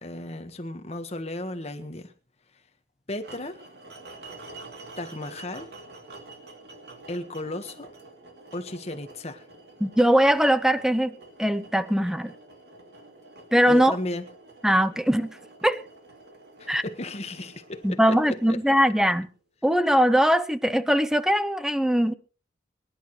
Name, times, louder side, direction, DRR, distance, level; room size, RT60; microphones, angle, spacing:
voice 1, 0.0-2.1 3.1-3.6 5.0-5.7 7.1-7.9 8.5-9.4 13.6-14.2 16.6-18.4, left 1 dB, 35° left, 1.5 m, -35 dB
sound 1, 3.2-19.3, right 2 dB, 60° right, 2.6 m, -48 dB
voice 2, 9.8-11.1 11.4-12.3 13.5-13.9 14.6-15.8 16.7-16.8 17.8-19.3 19.6-22.1, equal, 5° right, 0.6 m, -21 dB
23.5 x 11.0 x 3.2 m
head